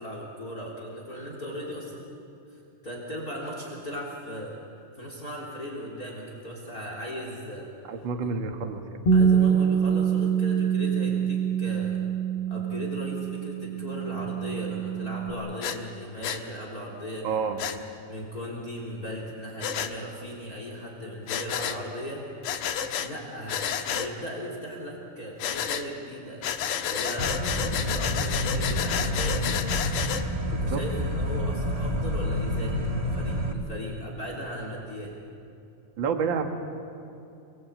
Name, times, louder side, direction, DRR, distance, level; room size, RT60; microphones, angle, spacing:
voice 1, 0.0-2.1 2.5-4.6 4.9-7.7 8.2-8.3 9.1-12.0 12.5-17.6 18.1-22.2 23.0-29.7 30.5-32.8 33.0-35.1, equal, 25° left, -1 dB, 3.7 m, -37 dB
voice 2, 7.9-8.8 17.2-17.6 30.5-30.8 31.4-31.5 36.0-36.4, right 5 dB, 40° right, 5 dB, 2.1 m, -29 dB
Bass guitar, 9.1-15.3, right 7 dB, 50° left, 3.6 m, -25 dB
Breathing, 15.6-15.8 16.2-16.4 17.6-17.8 19.6-19.9 21.3-21.8 22.4-23.1 23.5-24.1 25.4-25.8 26.4-30.2, left 9 dB, 70° left, 2.6 m, -30 dB
sound 1, 27.2-33.5, left 1 dB, 25° right, 0.8 m, -28 dB
29.0 x 20.5 x 8.8 m, 2.6 s
omnidirectional pair, 3.9 m